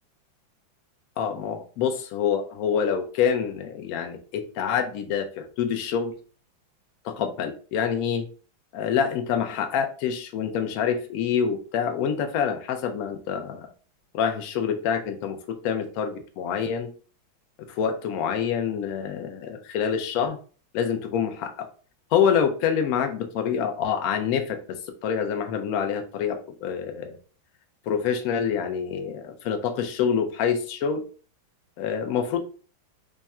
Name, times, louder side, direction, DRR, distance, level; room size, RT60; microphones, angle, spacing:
voice 1, 1.2-6.1 7.0-8.3 8.7-13.7 14.1-15.4 15.6-16.9 17.7-20.4 20.7-21.7 22.1-24.6 25.0-27.2 27.9-31.0 31.8-32.4, left 7 dB, 70° left, 5 dB, 0.9 m, -26 dB
3.5 x 2.2 x 4.2 m, 0.39 s
omnidirectional pair, 2.1 m